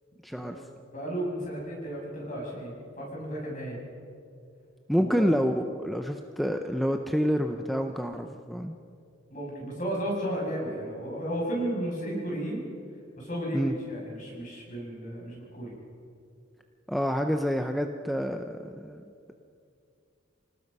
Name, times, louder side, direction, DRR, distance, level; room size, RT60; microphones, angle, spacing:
voice 1, 0.2-0.6 4.9-8.7 13.5-13.7 16.9-19.0, equal, ahead, 5 dB, 0.6 m, -28 dB
voice 2, 0.9-3.8 5.0-5.3 9.3-12.6 13.1-15.7, right 1 dB, 40° left, -2 dB, 7.0 m, -33 dB
27.0 x 18.5 x 5.4 m, 2.4 s
head